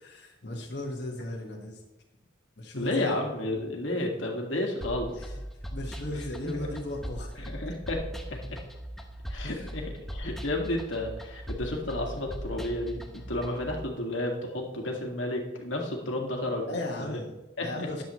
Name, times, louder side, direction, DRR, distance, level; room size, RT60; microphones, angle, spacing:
voice 1, 0.0-1.8 2.6-3.1 5.2-5.3 5.7-7.7 9.4-9.7 16.7-18.0, left 1 dB, 60° left, -2 dB, 1.6 m, -37 dB
voice 2, 2.7-5.3 6.1-6.6 7.5-8.0 8.3-8.6 9.3-9.8 10.1-16.7 17.0-17.2 17.6-17.7 17.9-18.0, left 1 dB, 80° left, 0 dB, 2.0 m, -32 dB
sound 1, 4.8-13.7, equal, ahead, 1.0 m, -39 dB
13.5 x 10.5 x 3.1 m, 1.0 s
head